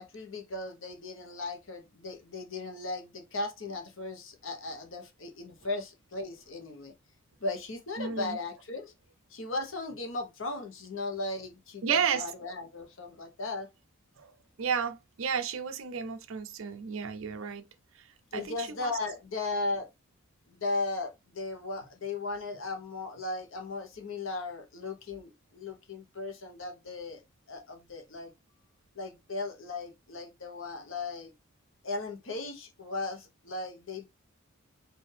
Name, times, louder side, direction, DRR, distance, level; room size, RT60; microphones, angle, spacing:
voice 1, 0.0-6.9 7.4-8.9 9.3-13.7 18.3-19.9 20.5-27.2 27.5-28.3 28.9-31.3 31.8-34.1, left 2 dB, 60° left, 1.0 m, -37 dB
voice 2, 8.0-8.4 11.8-12.2 14.2-14.3 14.6-17.6 18.3-18.9, right 7 dB, 65° right, 0.5 m, -32 dB
4.4 x 2.6 x 3.3 m
head